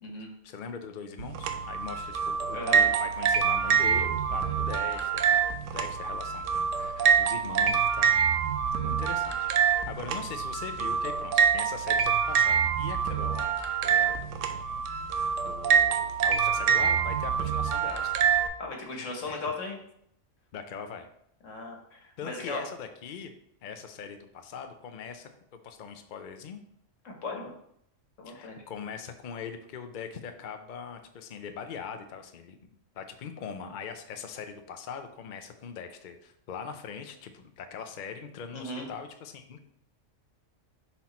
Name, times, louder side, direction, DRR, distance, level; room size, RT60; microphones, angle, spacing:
voice 1, 0.4-8.1 8.8-9.5 9.9-14.5 15.4-18.1 18.9-19.5 20.5-21.1 22.2-23.3 23.6-25.3 25.6-26.6 28.3-32.6 33.0-39.7, left 6 dB, 50° left, 6 dB, 0.6 m, -41 dB
sound 1, 1.2-18.5, right 7 dB, 90° right, 1.0 m, -26 dB
voice 2, 2.5-2.9 18.6-19.8 21.4-22.6 27.0-27.5 28.2-28.6 38.5-38.9, left 3 dB, 80° left, 1 dB, 1.6 m, -37 dB
5.9 x 4.4 x 4.2 m, 0.74 s
omnidirectional pair, 1.3 m